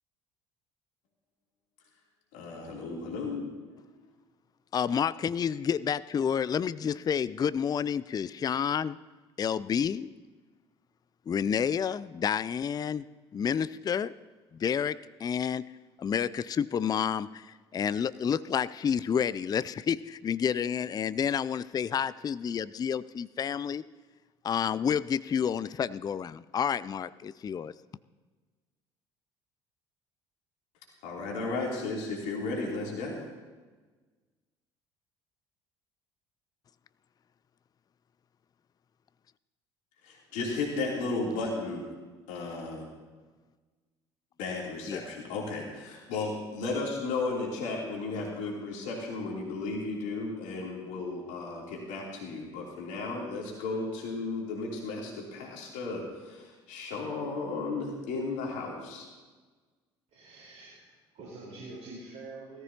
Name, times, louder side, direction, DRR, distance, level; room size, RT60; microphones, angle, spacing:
voice 1, 2.3-3.4 31.0-33.2 40.0-41.8 42.3-42.9 44.4-59.1, left 3 dB, 65° left, -2 dB, 3.2 m, -34 dB
voice 2, 4.7-9.0 9.4-10.1 11.3-13.0 13.3-14.1 14.6-15.7 16.0-23.8 24.4-27.7 44.9-45.0, left 7 dB, 25° left, 18 dB, 0.4 m, -29 dB
voice 3, 60.1-62.6, right 2 dB, 55° right, -5 dB, 4.5 m, -46 dB
17.5 x 14.0 x 2.9 m, 1.3 s
hypercardioid pair, 60°, 14 cm